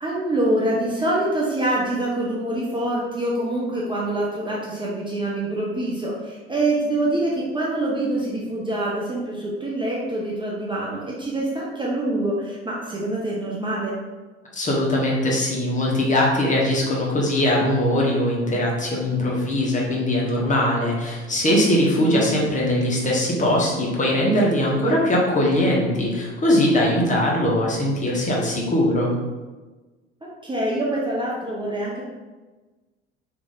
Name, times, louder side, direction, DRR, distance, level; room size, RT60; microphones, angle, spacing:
voice 1, 0.0-14.0 22.0-22.3 24.8-25.0 30.2-32.0, right 1 dB, 15° right, -5 dB, 0.9 m, -25 dB
voice 2, 14.5-29.1, left 1 dB, 20° left, -3 dB, 1.2 m, -21 dB
3.8 x 3.3 x 3.8 m, 1.3 s
figure-of-eight pair, 65°, 34 cm